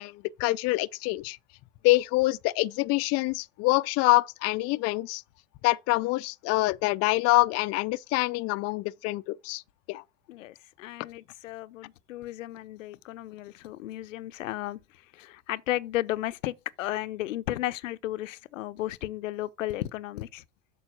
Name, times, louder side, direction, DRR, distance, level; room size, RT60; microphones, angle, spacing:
voice 1, 0.0-1.4 1.8-5.2 5.6-9.6 9.9-10.0, left 21 dB, 40° left, 0.4 m, -25 dB
voice 2, 10.3-20.4, left 15 dB, 85° left, 0.6 m, -34 dB
7.7 x 5.6 x 5.9 m
hypercardioid pair, 100°, 38 cm